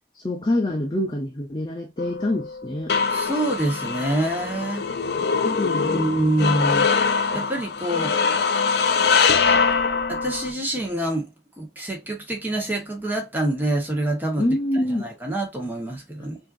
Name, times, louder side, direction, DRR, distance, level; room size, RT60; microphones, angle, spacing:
voice 1, 0.1-2.9 5.2-6.0 14.4-15.1 16.2-16.3, left 1 dB, 25° left, 0.6 m, -26 dB
sound 1, 2.0-10.5, left 5 dB, 65° left, 0.5 m, -23 dB
voice 2, 3.1-4.9 5.8-6.9 7.3-8.2 10.1-11.3 11.6-14.6 15.0-16.4, right 1 dB, 10° right, 1.3 m, -26 dB
5.4 x 2.8 x 2.6 m
head